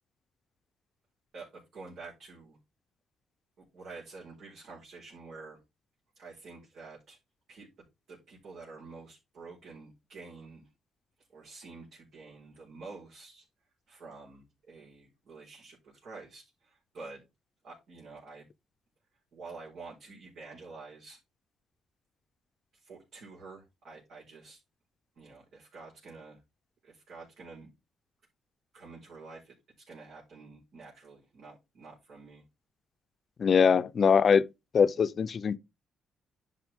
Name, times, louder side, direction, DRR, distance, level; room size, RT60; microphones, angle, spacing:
voice 1, 1.3-2.6 3.7-5.6 6.1-7.2 7.5-7.7 8.1-10.7 11.3-13.4 13.9-15.8 16.0-17.2 17.6-18.4 19.3-21.2 22.7-24.6 25.2-26.4 26.8-27.7 28.7-32.4, right 3 dB, 70° right, 4.9 m, -48 dB
voice 2, 33.4-34.4 34.7-35.6, left 6 dB, 50° left, 0.7 m, -22 dB
10.5 x 6.0 x 3.6 m
cardioid pair, 90°, 0 cm